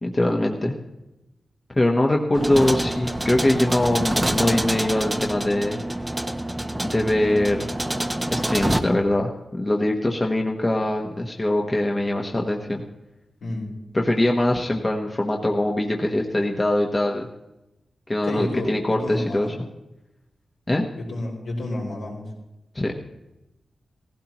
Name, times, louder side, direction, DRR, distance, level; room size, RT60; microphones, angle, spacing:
voice 1, 0.0-0.8 1.7-5.8 6.8-7.7 8.3-12.8 13.9-17.3 18.1-19.5 20.7-20.8 22.7-23.0, left 1 dB, 20° left, 1 dB, 1.1 m, -22 dB
sound 1, 2.3-8.8, right 1 dB, 10° right, 0.8 m, -26 dB
voice 2, 13.4-13.7 18.2-19.5 21.0-22.2, left 1 dB, 80° left, -2 dB, 4.0 m, -30 dB
17.0 x 16.0 x 3.0 m, 0.95 s
wide cardioid pair, 110°, 0 cm